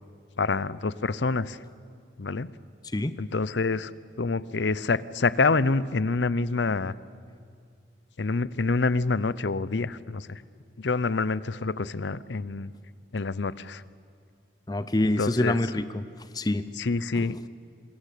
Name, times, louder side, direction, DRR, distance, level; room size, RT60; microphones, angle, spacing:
voice 1, 0.4-1.6 2.2-2.5 3.2-3.9 4.2-6.9 8.2-10.4 10.8-12.7 13.1-13.8 15.2-15.6 16.8-17.5, left 3 dB, 80° left, 18 dB, 0.7 m, -27 dB
voice 2, 14.7-16.0 16.3-16.7 17.1-17.4, left 1 dB, 20° left, 13 dB, 0.6 m, -26 dB
26.5 x 21.5 x 8.5 m, 2.2 s
head